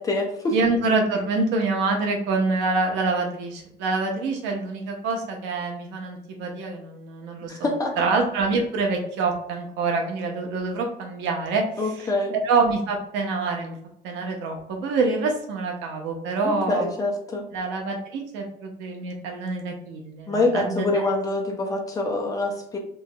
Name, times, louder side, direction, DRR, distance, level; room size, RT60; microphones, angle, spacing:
voice 1, 0.0-0.6 7.5-7.9 11.8-12.4 16.4-17.4 20.3-22.8, left 2 dB, 20° left, 1 dB, 0.5 m, -25 dB
voice 2, 0.5-7.7 8.0-11.6 12.0-12.1 12.4-13.7 14.0-16.9 17.5-21.1, right 3 dB, 85° right, 2 dB, 0.9 m, -26 dB
3.2 x 3.0 x 2.3 m, 0.75 s
cardioid pair, 180°, 18 cm